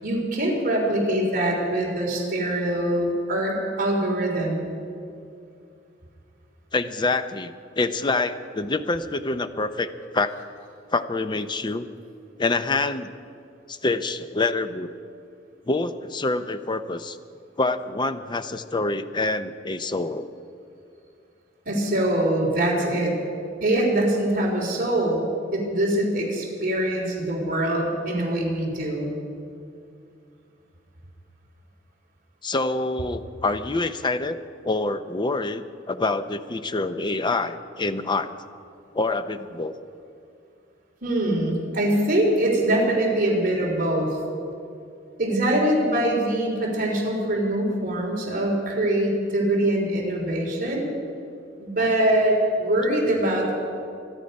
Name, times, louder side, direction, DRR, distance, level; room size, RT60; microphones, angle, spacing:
voice 1, 0.0-4.6 21.6-23.1 23.6-25.2 25.5-29.1 41.0-44.2 45.2-50.9 51.6-53.5, right 1 dB, 50° right, -1 dB, 3.4 m, -23 dB
voice 2, 6.7-10.3 10.9-11.8 12.4-13.1 13.7-14.9 15.7-17.2 17.6-20.3 32.4-34.4 34.6-38.3 38.9-39.7, left 3 dB, 25° left, 10 dB, 0.6 m, -26 dB
25.0 x 9.9 x 5.3 m, 2.5 s
head